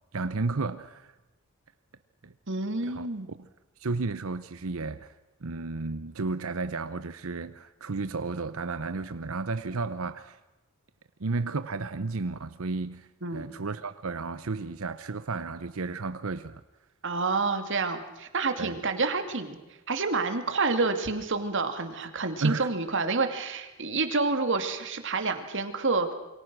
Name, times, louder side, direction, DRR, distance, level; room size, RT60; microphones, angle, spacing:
voice 1, 0.1-1.1 2.2-2.3 2.8-3.1 3.4-3.5 3.8-5.1 5.4-10.4 11.2-16.6 18.6-18.8 22.4-22.7, right 3 dB, 75° right, 12 dB, 0.8 m, -32 dB
voice 2, 2.5-3.3 13.2-13.5 17.0-19.6 19.9-26.1, right 3 dB, 60° right, 7 dB, 2.5 m, -28 dB
28.0 x 24.0 x 6.2 m, 1.1 s
head